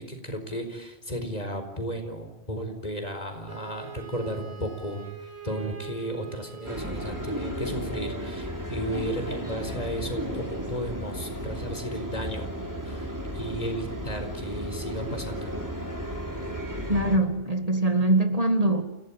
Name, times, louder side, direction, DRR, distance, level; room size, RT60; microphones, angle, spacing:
voice 1, 0.0-5.0 5.4-12.5 12.8-15.5, equal, 40° left, 6 dB, 4.6 m, -34 dB
Wind instrument woodwind instrument, 3.5-7.9, right 8 dB, 85° right, 3.4 m, -44 dB
sound 1, 6.7-17.2, equal, 15° right, 3.6 m, -34 dB
voice 2, 16.9-18.8, right 1 dB, 35° right, 7 dB, 1.8 m, -23 dB
29.0 x 17.0 x 8.8 m, 1.0 s
omnidirectional pair, 1.1 m